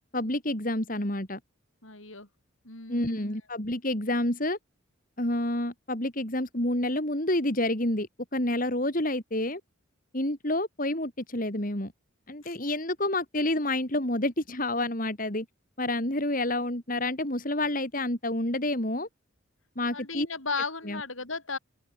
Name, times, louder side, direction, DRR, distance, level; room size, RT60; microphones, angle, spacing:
voice 1, 0.1-1.4 2.9-4.6 5.2-9.6 10.1-11.9 12.3-15.5 15.8-19.1 19.8-20.3 20.9-21.0, left 1 dB, 40° left, 3.6 m, -29 dB
voice 2, 1.8-2.3 2.6-3.3 12.4-12.6 19.9-21.6, left 4 dB, 75° left, 7.0 m, -35 dB
open air
head